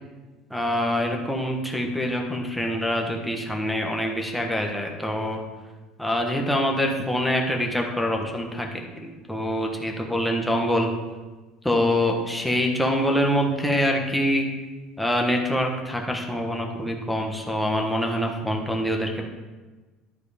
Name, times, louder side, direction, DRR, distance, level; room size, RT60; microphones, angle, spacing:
voice 1, 0.5-5.4 6.0-10.9 11.6-14.5 15.0-19.3, equal, ahead, 0 dB, 1.2 m, -25 dB
11.0 x 4.6 x 5.1 m, 1.3 s
cardioid pair, 125°, 0 cm